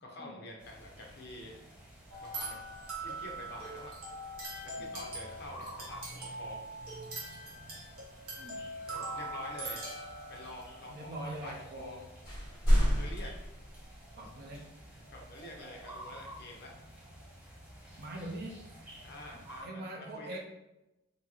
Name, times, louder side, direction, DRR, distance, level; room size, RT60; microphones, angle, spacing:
voice 1, 0.0-1.6 2.2-2.6 3.0-3.9 4.6-6.6 8.9-9.8 10.3-12.1 12.7-13.3 14.2-14.4 14.9-16.7 19.0-20.4, left 1 dB, 50° left, 0 dB, 0.6 m, -47 dB
sound 1, 0.6-19.6, right 1 dB, 5° right, 0.8 m, -51 dB
sound 2, 2.1-11.0, right 2 dB, 75° right, 0.9 m, -42 dB
voice 2, 10.9-12.0 12.7-13.0 14.2-14.7 18.0-18.8 19.3-20.4, right 1 dB, 50° right, 1 dB, 0.5 m, -43 dB
sound 3, 11.8-12.0 12.2-14.3, equal, 20° left, 1.3 m, -29 dB
2.8 x 2.7 x 2.3 m, 0.94 s
head